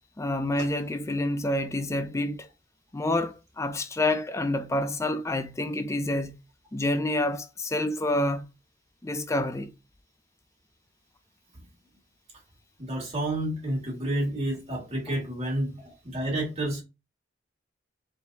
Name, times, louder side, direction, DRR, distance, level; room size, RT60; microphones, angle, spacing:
voice 1, 0.2-2.5 2.9-6.3 6.7-8.4 9.0-9.7, left 1 dB, 15° left, 0.4 m, -28 dB
voice 2, 12.8-16.8, right 1 dB, 35° right, 1.9 m, -30 dB
4.5 x 3.4 x 2.7 m
head